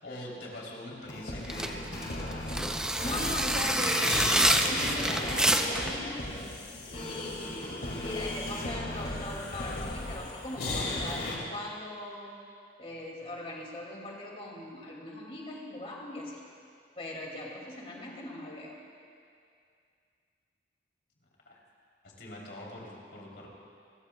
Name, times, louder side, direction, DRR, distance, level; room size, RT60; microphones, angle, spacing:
voice 1, 0.0-2.0 21.5-21.6 22.2-23.5, left 1 dB, 80° left, -3 dB, 3.1 m, -43 dB
sound 1, 1.0-11.4, left 1 dB, 60° left, 2.1 m, -36 dB
sound 2, 1.4-5.9, right 1 dB, 5° right, 0.5 m, -27 dB
voice 2, 3.0-6.2 6.9-7.7 8.0-12.3 12.8-16.4 17.0-18.7, left 1 dB, 35° left, -2 dB, 2.2 m, -39 dB
28.0 x 14.5 x 2.3 m, 2.3 s
head